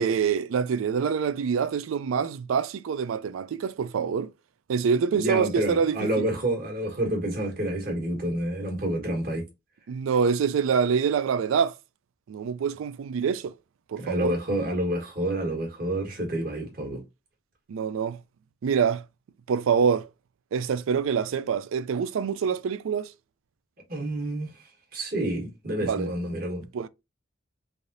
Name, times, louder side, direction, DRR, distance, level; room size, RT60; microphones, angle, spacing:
voice 1, 0.0-4.3 4.7-6.1 9.9-11.7 12.3-13.5 13.9-14.3 17.7-18.2 18.6-19.0 19.5-20.1 20.5-23.1 25.8-26.1 26.7-26.9, right 6 dB, 90° right, 0.3 m, -25 dB
voice 2, 5.1-9.4 14.0-17.0 23.9-24.5 24.9-26.7, right 1 dB, 45° right, 1.2 m, -28 dB
3.3 x 2.6 x 2.6 m
head